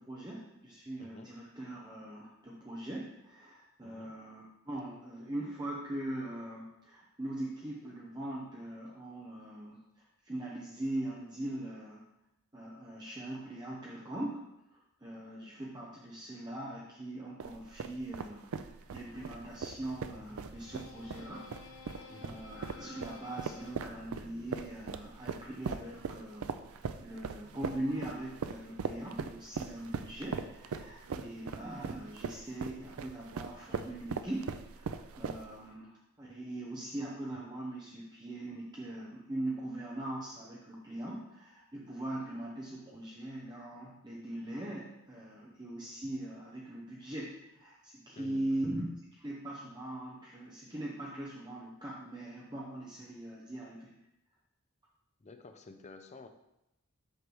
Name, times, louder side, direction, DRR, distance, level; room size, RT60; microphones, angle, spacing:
voice 1, 0.0-9.8 10.2-12.0 12.5-14.4 14.7-48.8 49.1-53.9, right 1 dB, 20° right, -4 dB, 0.7 m, -41 dB
voice 2, 1.0-1.4 3.8-4.1 22.1-22.5 31.1-31.4 48.2-48.6 55.2-56.3, left 3 dB, 30° left, 7 dB, 0.5 m, -52 dB
sound 1, 17.4-35.7, right 5 dB, 75° right, 0.4 m, -40 dB
sound 2, 19.1-25.3, left 3 dB, 90° left, 1.0 m, -53 dB
8.0 x 3.3 x 6.1 m, 0.89 s
head